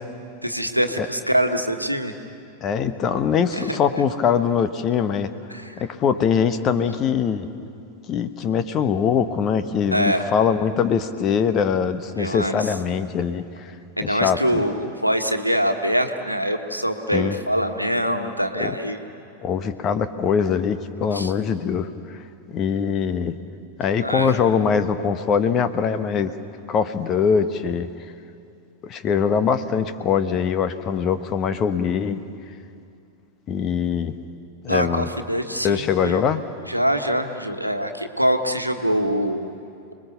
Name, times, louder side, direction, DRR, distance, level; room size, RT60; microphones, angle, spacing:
voice 1, 0.4-2.1 3.5-3.8 5.5-5.8 9.9-10.2 12.2-12.7 14.0-19.0 21.1-21.3 24.0-24.3 34.7-36.2 36.7-39.5, equal, 90° right, 5 dB, 1.5 m, -24 dB
voice 2, 2.6-5.3 5.8-7.5 8.1-13.7 14.0-14.6 17.1-17.3 18.6-18.7 19.4-22.2 22.5-23.3 23.8-26.3 26.7-27.9 28.8-32.2 33.5-34.1 34.6-35.1 35.6-36.4, left 7 dB, 30° left, 10 dB, 1.2 m, -22 dB
29.5 x 21.0 x 7.0 m, 2.6 s
figure-of-eight pair, 90°, 0 cm